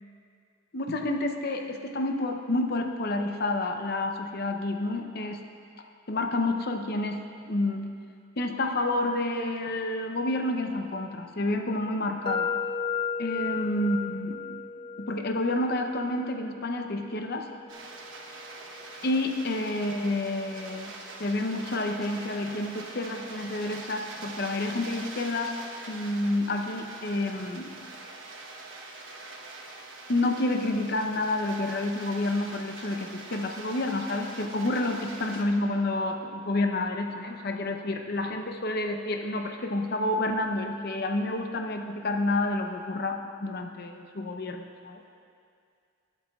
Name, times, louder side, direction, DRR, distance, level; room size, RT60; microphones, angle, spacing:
voice 1, 0.7-5.4 6.1-7.2 7.5-7.9 8.4-12.5 13.2-14.6 15.0-17.5 19.0-20.9 21.2-25.6 25.9-27.7 30.1-45.0, left 2 dB, 55° left, 4 dB, 0.7 m, -29 dB
sound 1, 12.3-20.1, left 6 dB, 25° left, 0.3 m, -36 dB
sound 2, 17.7-35.4, right 3 dB, 80° right, 1.1 m, -43 dB
20.0 x 8.3 x 2.4 m, 2.3 s
head